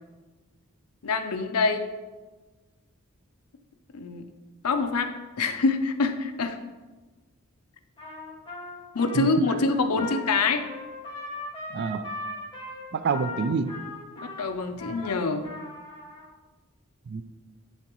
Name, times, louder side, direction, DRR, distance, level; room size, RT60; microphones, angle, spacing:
voice 1, 1.0-1.9 3.9-4.2 4.6-6.6 8.9-10.6 14.2-15.5, left 3 dB, 85° left, 7 dB, 0.6 m, -25 dB
Trumpet, 8.0-16.2, left 2 dB, 20° left, 1.6 m, -39 dB
voice 2, 11.7-12.1 12.9-13.7 17.1-17.2, right 5 dB, 50° right, 12 dB, 0.3 m, -27 dB
11.5 x 4.0 x 3.0 m, 1.3 s
head